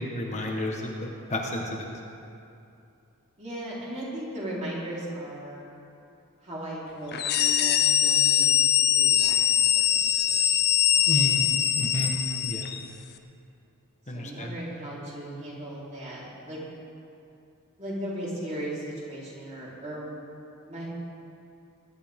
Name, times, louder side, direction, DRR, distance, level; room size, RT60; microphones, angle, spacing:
voice 1, 0.0-1.9 11.1-12.1 12.4-12.7 14.1-14.5, left 1 dB, 35° left, 0 dB, 1.3 m, -31 dB
voice 2, 3.4-5.7 6.4-10.5 14.1-16.6 17.8-20.1 20.7-20.9, right 1 dB, 35° right, -7 dB, 4.0 m, -37 dB
sound 1, 7.1-12.8, left 10 dB, 50° left, 0.7 m, -22 dB
22.5 x 11.5 x 3.7 m, 2.6 s
head